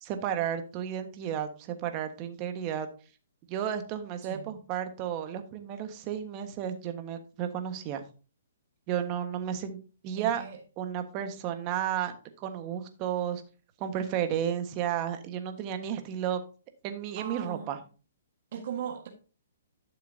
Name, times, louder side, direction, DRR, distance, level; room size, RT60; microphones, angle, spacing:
voice 1, 0.0-2.9 3.5-8.0 8.9-9.8 10.0-10.4 10.8-12.1 12.4-13.4 13.8-16.4 16.8-17.8, right 9 dB, 30° right, 1.4 m, -32 dB
voice 2, 10.2-10.6 17.2-17.8 18.5-19.1, right 8 dB, 55° right, 1.5 m, -38 dB
11.5 x 6.6 x 2.7 m
hypercardioid pair, 140°, 0 cm